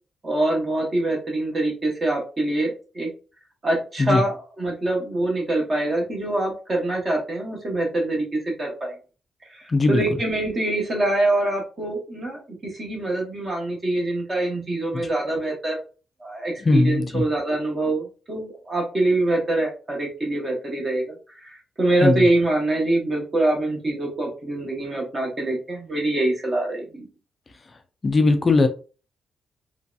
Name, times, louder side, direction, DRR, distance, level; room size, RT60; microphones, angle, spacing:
voice 1, 0.2-3.1 3.6-8.9 9.4-15.8 16.2-27.1, right 2 dB, 25° right, 0.8 m, -24 dB
voice 2, 9.7-10.0 16.6-17.2 22.0-22.3 28.0-28.7, left 3 dB, 25° left, 0.3 m, -19 dB
3.0 x 2.7 x 2.2 m
wide cardioid pair, 180°, 0 cm